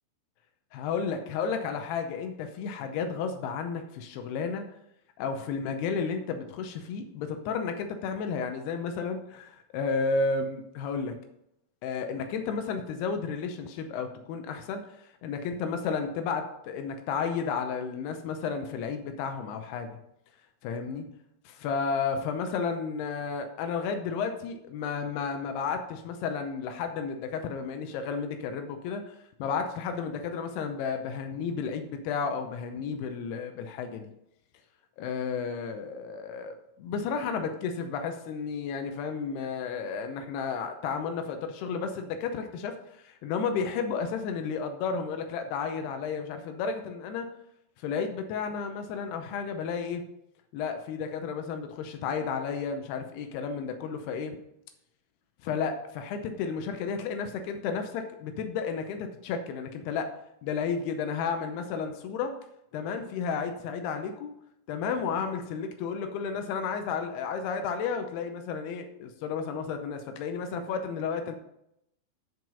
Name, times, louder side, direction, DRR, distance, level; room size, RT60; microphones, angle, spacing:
voice 1, 0.7-4.7 5.2-11.2 11.8-19.9 20.6-21.1 21.5-34.0 35.0-47.3 47.8-50.0 50.5-54.4 55.4-60.1 60.4-62.3 62.7-64.3 64.7-71.4, left 5 dB, 85° left, 6 dB, 2.3 m, -32 dB
11.0 x 4.7 x 5.4 m, 0.81 s
omnidirectional pair, 5.5 m